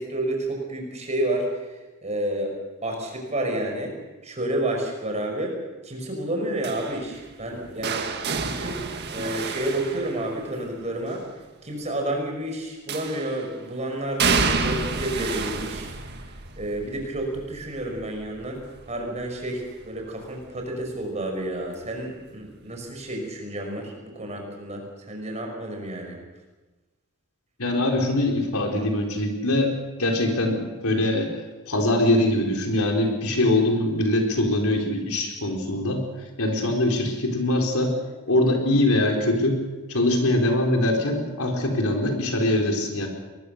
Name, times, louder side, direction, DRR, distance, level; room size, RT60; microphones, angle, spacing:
voice 1, 0.0-2.5 2.8-3.9 4.2-5.6 5.8-8.1 8.4-8.8 9.1-11.2 11.6-15.9 16.6-26.2, right 1 dB, 30° right, 2 dB, 5.4 m, -30 dB
sound 1, 6.6-10.7 12.9-13.5 14.2-20.0 20.4-20.8 22.0-22.1, right 4 dB, 50° right, 1.8 m, -30 dB
voice 2, 27.6-29.7 30.0-31.3 31.7-36.0 36.4-37.9 38.3-39.6 39.9-43.1, left 1 dB, 75° left, 2 dB, 4.2 m, -22 dB
23.0 x 20.5 x 6.6 m, 1.2 s
head